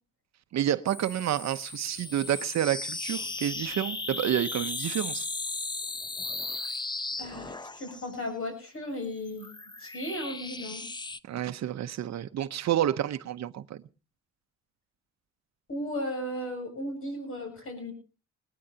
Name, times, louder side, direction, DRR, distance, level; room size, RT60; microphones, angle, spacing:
voice 1, 0.5-5.3 11.2-13.8, right 11 dB, 60° right, 0.8 m, -29 dB
sound 1, 0.9-8.2 9.0-11.2, left 3 dB, 15° left, 0.6 m, -36 dB
voice 2, 7.2-9.5 9.8-10.8 15.7-17.9, left 1 dB, 45° left, 8.0 m, -35 dB
20.0 x 19.0 x 2.7 m
cardioid pair, 90°, 30 cm